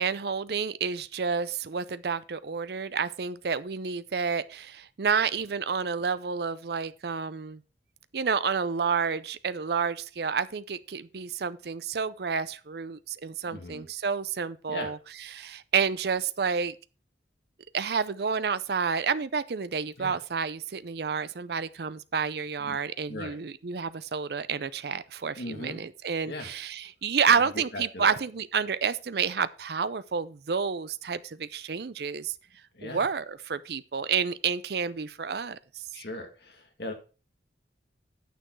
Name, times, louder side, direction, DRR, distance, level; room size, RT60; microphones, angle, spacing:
voice 1, 0.0-7.6 8.1-15.0 15.3-16.8 17.7-32.3 32.8-35.6, right 6 dB, 60° right, 0.5 m, -29 dB
voice 2, 13.5-13.9 14.7-14.9 20.0-20.2 22.6-22.8 23.1-23.4 25.4-25.8 26.2-26.5 27.7-28.2 32.7-33.0 35.9-36.9, left 1 dB, 60° left, 2.1 m, -38 dB
9.1 x 6.8 x 4.6 m
head